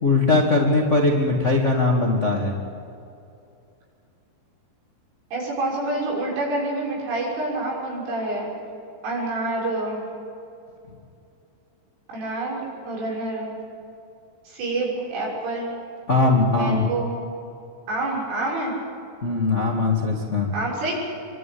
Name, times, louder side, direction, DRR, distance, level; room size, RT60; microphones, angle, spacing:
voice 1, 0.0-2.5 16.1-16.9 19.2-20.5, left 3 dB, 50° left, -1 dB, 0.8 m, -20 dB
voice 2, 5.3-8.5 9.0-10.0 12.1-12.6 12.8-13.5 14.5-15.7 16.5-17.2 17.9-18.7 20.5-20.9, right 2 dB, 80° right, -3 dB, 9.2 m, -27 dB
26.5 x 24.0 x 8.7 m, 2.6 s
omnidirectional pair, 5.6 m